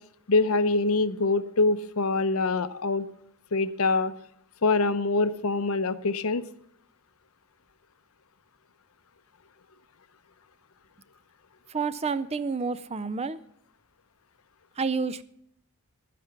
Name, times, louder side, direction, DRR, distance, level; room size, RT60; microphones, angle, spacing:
voice 1, 0.3-3.1 3.5-4.1 4.6-6.4, left 3 dB, 70° left, 13 dB, 0.8 m, -24 dB
voice 2, 11.7-13.4 14.8-15.2, right 4 dB, 30° right, 16 dB, 0.5 m, -29 dB
11.5 x 10.0 x 5.9 m, 0.68 s
head